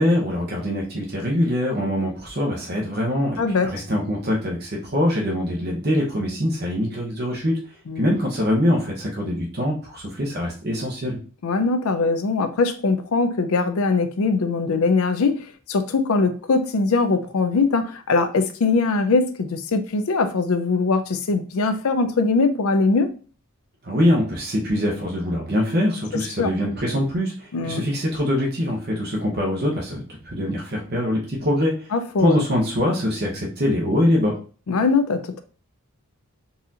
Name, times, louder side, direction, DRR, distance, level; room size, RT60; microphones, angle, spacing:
voice 1, 0.0-7.6 8.0-11.2 23.8-31.9 32.2-34.4, left 1 dB, 45° right, 0.8 m, -23 dB
voice 2, 3.4-3.7 7.9-8.1 11.4-23.1 26.4-26.5 27.5-27.8 31.9-32.4 34.7-35.4, left 4 dB, 75° left, 0.5 m, -21 dB
4.0 x 2.5 x 2.7 m
head